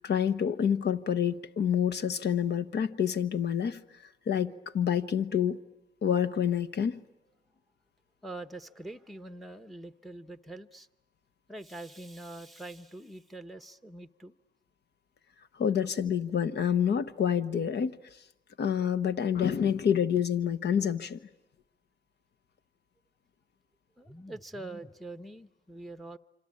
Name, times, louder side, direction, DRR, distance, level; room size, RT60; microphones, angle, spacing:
voice 1, 0.0-3.8 4.3-5.6 6.0-7.0 15.5-18.0 18.6-21.2, left 8 dB, 60° left, 1.1 m, -28 dB
voice 2, 8.2-10.9 11.5-14.3 24.0-26.2, right 2 dB, ahead, 0.9 m, -44 dB
26.5 x 26.0 x 8.6 m
cardioid pair, 90°, 20 cm